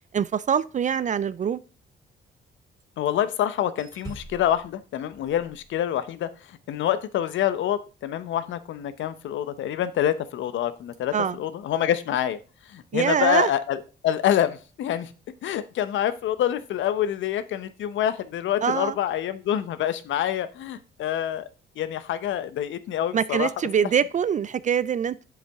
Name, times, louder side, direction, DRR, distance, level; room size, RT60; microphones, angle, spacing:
voice 1, 0.1-1.6 11.1-11.4 12.9-13.5 18.6-18.9 23.1-25.2, right 8 dB, 40° right, 0.4 m, -24 dB
sound 1, 2.8-3.3 3.8-6.2 9.0-9.2 10.2-10.4 10.8-11.0 15.8-15.9, right 2 dB, 20° right, 2.1 m, -46 dB
voice 2, 3.0-12.4 12.7-15.1 15.4-21.4 21.8-23.5, left 11 dB, 75° left, 0.8 m, -26 dB
7.4 x 7.2 x 3.5 m
cardioid pair, 90°, 20 cm